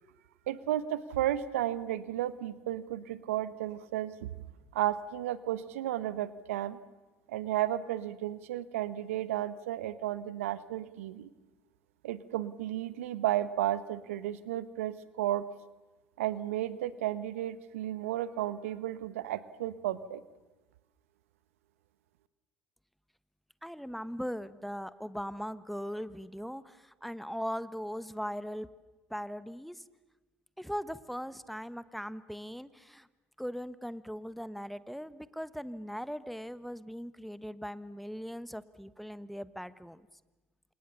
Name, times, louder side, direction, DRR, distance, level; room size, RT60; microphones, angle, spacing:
voice 1, 0.5-4.3 4.7-6.8 7.3-11.3 12.0-15.4 16.2-20.2, right 13 dB, 80° right, 16 dB, 1.1 m, -33 dB
voice 2, 23.6-28.7 29.1-29.8 30.6-33.1 33.4-40.1, equal, ahead, 15 dB, 1.3 m, -39 dB
30.0 x 27.0 x 7.0 m, 1.2 s
hypercardioid pair, 60°, 7 cm